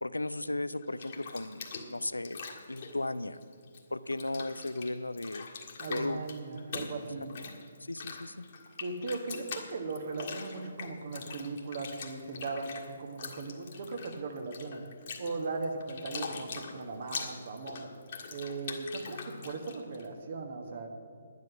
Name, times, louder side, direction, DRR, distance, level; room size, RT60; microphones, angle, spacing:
voice 1, 0.0-2.4 2.7-3.4 3.9-5.4 5.9-6.2 7.8-8.5, left 2 dB, 85° left, 14 dB, 0.5 m, -35 dB
Bathtub (filling or washing), 0.8-3.8 4.1-20.1, left 5 dB, 45° left, 1.8 m, -43 dB
voice 2, 5.8-7.5 8.8-14.8 15.2-17.8 18.3-20.9, right 3 dB, 45° right, 4 dB, 1.6 m, -38 dB
10.5 x 10.5 x 6.2 m, 2.2 s
figure-of-eight pair, 140°, 0 cm